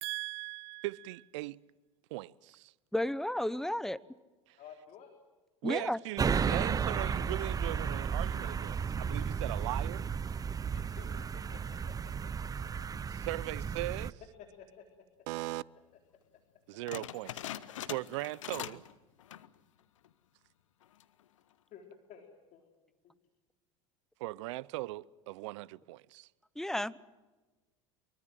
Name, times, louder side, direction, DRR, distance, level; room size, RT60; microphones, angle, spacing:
voice 1, 0.0-1.6 2.1-2.7 4.5-4.6 5.6-10.1 13.1-14.2 15.3-15.6 16.7-18.8 24.2-26.3, right 19 dB, 70° right, 0.7 m, -39 dB
voice 2, 2.9-4.0 5.6-6.0 26.6-27.0, left 1 dB, 5° left, 0.9 m, -32 dB
voice 3, 4.6-5.1 5.7-5.9 10.7-12.1 14.6-14.8 21.7-22.3 22.5-22.6 23.0-23.1, left 7 dB, 50° left, 3.8 m, -52 dB
sound 1, 6.2-14.1, right 6 dB, 20° right, 0.7 m, -33 dB
sound 2, 16.9-18.9 19.2-19.6 20.0-20.1 20.8-21.2, left 12 dB, 80° left, 1.0 m, -42 dB
25.0 x 23.5 x 7.7 m
hypercardioid pair, 80°, 16 cm